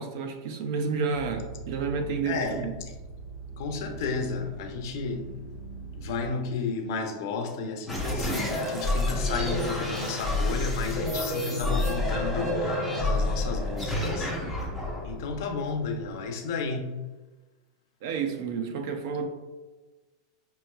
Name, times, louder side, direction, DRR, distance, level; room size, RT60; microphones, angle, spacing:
voice 1, 0.0-2.8 18.0-19.3, right 5 dB, 50° right, 0.5 m, -30 dB
sound 1, 1.1-6.3, right 4 dB, 80° right, 1.3 m, -42 dB
voice 2, 2.3-2.6 3.6-5.3 5.9-14.3 15.0-16.9, left 4 dB, 55° left, 0.5 m, -32 dB
sound 2, 7.9-16.1, left 1 dB, ahead, 0.5 m, -29 dB
5.4 x 3.0 x 2.2 m
supercardioid pair, 175°, 2 cm